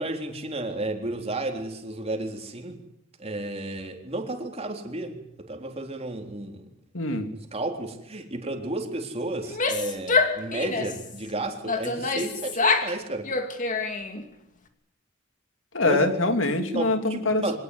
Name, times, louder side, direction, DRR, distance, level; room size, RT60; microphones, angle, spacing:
voice 1, 0.0-2.8 3.2-5.2 5.5-6.6 7.3-13.3 15.8-16.1 16.7-17.6, right 2 dB, 30° right, 3 dB, 3.8 m, -32 dB
voice 2, 6.9-7.3 15.7-17.6, left 2 dB, 85° left, 7 dB, 3.0 m, -24 dB
Female speech woman speaking / Yell, 9.4-11.0 11.7-12.9 13.2-14.2, left 4 dB, 40° left, 2.6 m, -26 dB
25.0 x 18.5 x 9.6 m, 0.83 s
head